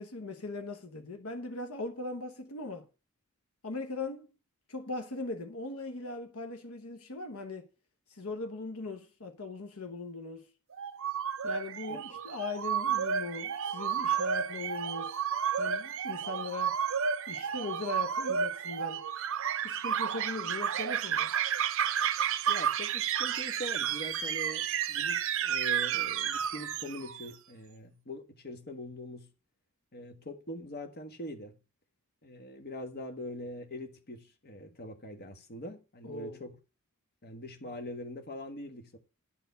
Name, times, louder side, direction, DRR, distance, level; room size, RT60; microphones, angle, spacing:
voice 1, 0.0-2.9 3.6-4.3 4.7-7.7 8.1-10.5 11.4-15.2 15.6-16.8 17.3-19.1 19.6-21.3 36.0-36.4, left 3 dB, 75° left, 1.2 m, -39 dB
sound 1, 10.7-27.3, right 8 dB, 65° right, 0.6 m, -31 dB
voice 2, 22.5-29.3 29.9-31.6 32.2-36.6 37.2-39.0, left 1 dB, 45° left, 1.4 m, -43 dB
11.0 x 4.5 x 6.9 m
head